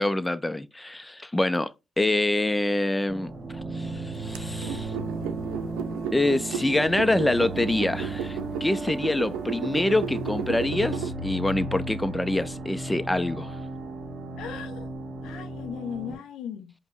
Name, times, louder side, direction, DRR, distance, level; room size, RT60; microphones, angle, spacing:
voice 1, 0.0-4.9 6.1-13.6, left 1 dB, 15° left, 0.5 m, -26 dB
sound 1, 3.1-16.2, right 2 dB, 55° right, 1.9 m, -35 dB
sound 2, 4.3-11.1, right 9 dB, 90° right, 0.4 m, -34 dB
voice 2, 14.4-14.9 15.2-16.7, left 8 dB, 85° left, 0.5 m, -37 dB
5.2 x 2.2 x 4.5 m
supercardioid pair, 50°, 0 cm